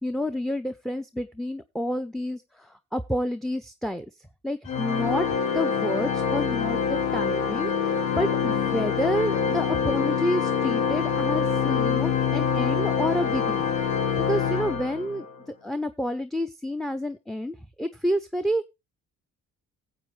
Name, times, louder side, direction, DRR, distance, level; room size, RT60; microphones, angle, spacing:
voice 1, 0.0-4.1 4.4-13.7 14.3-15.3 15.6-18.7, equal, ahead, 11 dB, 0.5 m, -29 dB
Organ, 4.7-15.3, left 7 dB, 85° left, 1.6 m, -25 dB
16.5 x 7.8 x 3.2 m, 0.25 s
cardioid pair, 90°, 30 cm